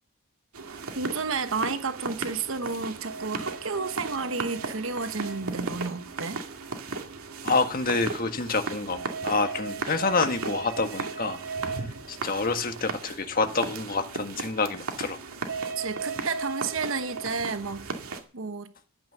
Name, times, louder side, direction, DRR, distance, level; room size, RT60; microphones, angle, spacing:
sound 1, 0.5-18.2, right 4 dB, 90° right, 2.4 m, -35 dB
voice 1, 0.9-6.4 15.8-18.0 18.3-18.7, right 4 dB, 65° right, 1.1 m, -31 dB
voice 2, 7.4-11.4 12.1-15.2, left 3 dB, 40° left, 1.7 m, -27 dB
13.0 x 9.1 x 6.9 m
head